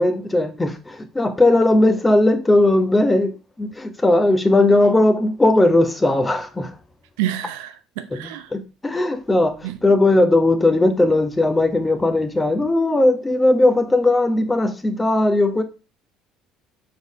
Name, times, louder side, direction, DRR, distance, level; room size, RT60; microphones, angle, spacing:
voice 1, 0.0-3.3 3.6-6.7 8.1-15.6, left 2 dB, 15° left, 1.1 m, -18 dB
voice 2, 7.2-8.5 9.6-9.8, right 13 dB, 65° right, 0.6 m, -28 dB
6.9 x 4.1 x 4.9 m
figure-of-eight pair, 55°, 0 cm